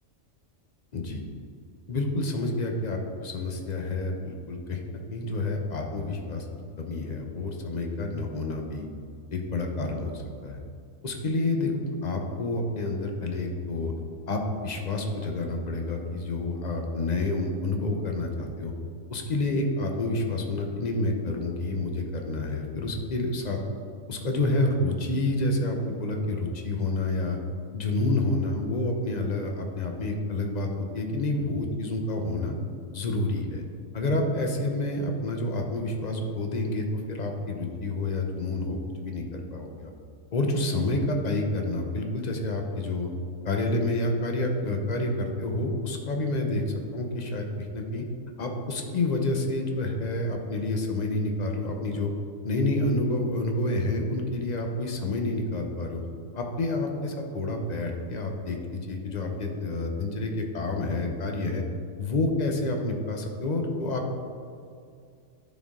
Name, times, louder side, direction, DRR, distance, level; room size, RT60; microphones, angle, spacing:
voice 1, 1.9-6.5 6.8-8.9 9.3-10.6 11.0-11.7 12.0-13.9 14.3-18.7 19.1-23.6 24.1-27.4 27.7-32.5 32.9-33.6 33.9-39.9 40.3-43.1 43.4-46.6 46.9-47.5 47.7-48.1 48.4-52.1 52.4-56.0 56.3-61.6 62.0-64.2, left 2 dB, 40° left, 2 dB, 0.7 m, -29 dB
10.0 x 4.3 x 3.6 m, 2.4 s
omnidirectional pair, 1.4 m